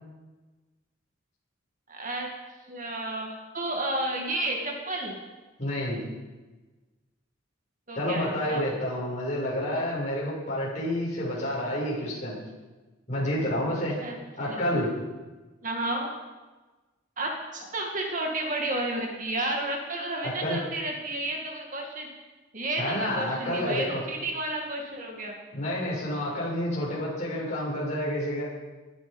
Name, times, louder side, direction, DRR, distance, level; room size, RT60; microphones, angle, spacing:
voice 1, 1.9-2.3 2.7-5.2 7.9-8.6 14.0-14.2 14.4-14.8 15.6-16.1 17.2-22.1 22.5-25.4, right 1 dB, 40° right, 1 dB, 2.2 m, -31 dB
voice 2, 5.6-6.0 7.9-12.4 13.1-14.0 14.4-14.9 20.2-20.6 22.8-24.0 25.5-28.4, left 1 dB, 35° left, -5 dB, 7.3 m, -29 dB
19.5 x 13.0 x 5.5 m, 1.2 s
head